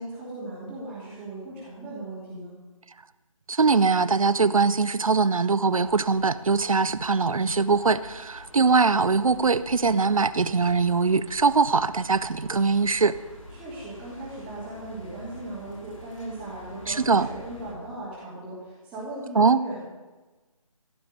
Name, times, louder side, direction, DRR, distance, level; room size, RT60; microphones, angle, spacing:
voice 1, 0.0-2.5 13.5-19.8, right 1 dB, 10° right, -12 dB, 2.9 m, -38 dB
voice 2, 3.5-13.2 16.9-17.3 19.4-19.6, right 4 dB, 70° right, 15 dB, 0.6 m, -22 dB
sound 1, 5.8-17.7, left 1 dB, 65° left, 4.6 m, -47 dB
16.5 x 6.4 x 9.2 m, 1.2 s
figure-of-eight pair, 160°, 18 cm